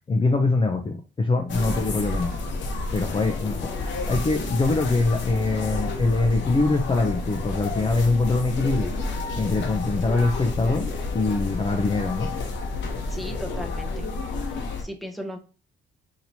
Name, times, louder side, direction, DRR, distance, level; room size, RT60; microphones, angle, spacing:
voice 1, 0.1-2.3 2.9-3.7 4.1-8.9 9.3-12.3, left 3 dB, 25° left, 0.6 m, -23 dB
sound 1, 1.5-14.8, left 3 dB, 70° left, 1.0 m, -30 dB
voice 2, 13.1-14.1 14.5-15.4, equal, ahead, 0.9 m, -36 dB
4.2 x 3.0 x 2.7 m
cardioid pair, 90°, 20 cm